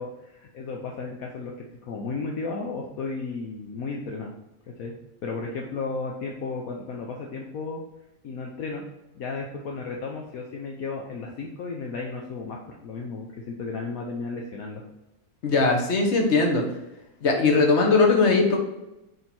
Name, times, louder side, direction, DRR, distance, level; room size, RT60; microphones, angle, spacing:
voice 1, 0.0-1.5 1.8-4.3 4.8-4.9 5.2-7.8 8.2-8.8 9.1-14.8, left 4 dB, 70° left, 0 dB, 1.2 m, -34 dB
voice 2, 15.4-16.6 17.2-18.6, left 3 dB, 50° left, 1 dB, 1.5 m, -20 dB
6.4 x 4.6 x 4.4 m, 0.94 s
omnidirectional pair, 1.6 m